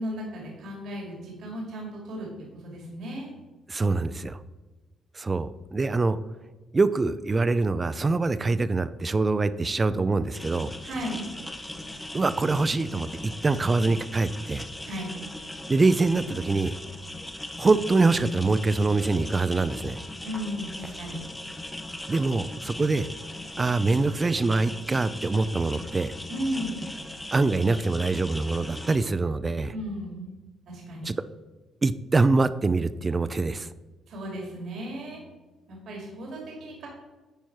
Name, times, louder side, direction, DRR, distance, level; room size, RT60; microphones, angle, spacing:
voice 1, 0.0-2.3 2.5-3.3 10.8-11.3 14.8-15.2 20.2-21.2 26.3-26.8 29.7-30.4 30.7-31.1 34.1-35.2 35.7-36.9, equal, 70° right, -1 dB, 2.3 m, -35 dB
voice 2, 3.7-4.4 5.1-6.2 6.7-10.7 12.1-14.6 15.7-16.7 17.6-20.0 22.1-23.1 23.6-26.1 27.3-29.7 31.0-31.1 31.8-33.7, right 3 dB, 30° right, 14 dB, 0.4 m, -24 dB
sound 1, 10.3-29.0, left 1 dB, 10° left, 0.9 m, -39 dB
10.5 x 4.5 x 4.6 m, 1.2 s
cardioid pair, 90°, 0 cm